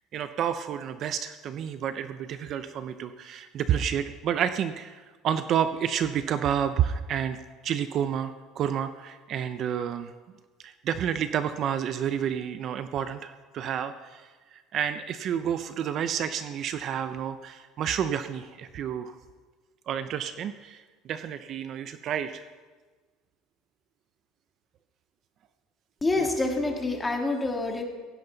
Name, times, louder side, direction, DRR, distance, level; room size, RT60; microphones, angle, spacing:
voice 1, 0.1-7.4 7.6-10.1 10.6-19.2 19.9-22.4 26.2-26.3, right 9 dB, 45° right, 10 dB, 0.6 m, -30 dB
voice 2, 26.0-27.8, left 2 dB, 15° left, 1 dB, 2.1 m, -27 dB
16.5 x 16.0 x 4.0 m, 1.4 s
cardioid pair, 150°, 0 cm